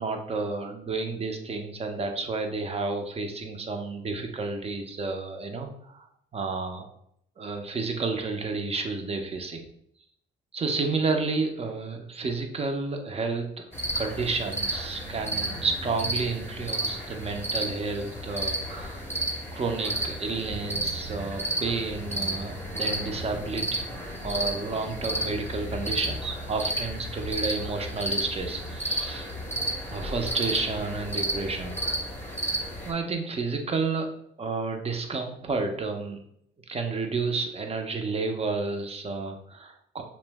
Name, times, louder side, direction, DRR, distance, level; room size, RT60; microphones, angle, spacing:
voice 1, 0.0-6.1 6.3-6.9 7.4-9.6 10.5-13.6 14.0-19.1 19.5-29.3 29.9-31.8 32.8-34.1 34.4-36.2 36.7-40.0, right 4 dB, 30° right, 4 dB, 0.5 m, -31 dB
sound 1, 13.7-32.9, right 1 dB, 10° left, 0.8 m, -32 dB
2.7 x 2.0 x 3.3 m, 0.71 s
cardioid pair, 90°, 20 cm